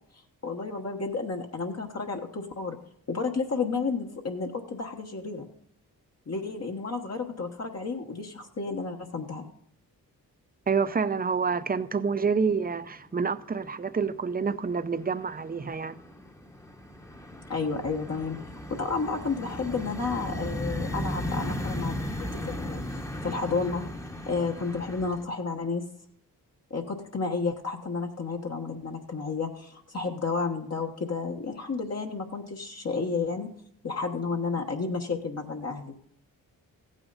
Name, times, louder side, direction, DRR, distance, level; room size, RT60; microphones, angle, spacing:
voice 1, 0.4-2.8 3.1-5.5 6.3-9.5 17.5-18.4 18.7-22.8 23.2-23.8 24.3-25.8 26.7-33.5 33.8-35.9, left 4 dB, 45° left, 1.3 m, -31 dB
voice 2, 10.7-16.0, right 5 dB, 25° right, 0.6 m, -28 dB
sound 1, 12.2-12.7 13.0-13.7 14.1-25.2, left 1 dB, 10° left, 1.1 m, -36 dB
15.0 x 9.0 x 4.0 m
cardioid pair, 75°, 36 cm